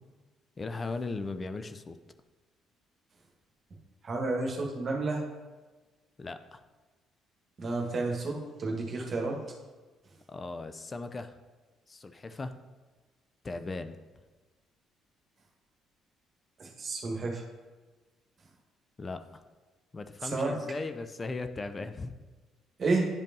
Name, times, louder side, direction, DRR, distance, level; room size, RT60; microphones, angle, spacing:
voice 1, 0.6-2.0 6.2-6.6 10.3-11.4 11.9-12.5 13.4-14.0 19.0-19.4 19.9-22.1, left 3 dB, 30° left, 9 dB, 0.5 m, -37 dB
voice 2, 4.0-5.2 7.6-9.4 16.6-17.4 20.2-20.5 22.8-23.1, right 3 dB, 45° right, 1 dB, 1.4 m, -31 dB
10.0 x 5.1 x 2.7 m, 1.3 s
hypercardioid pair, 50°, 0 cm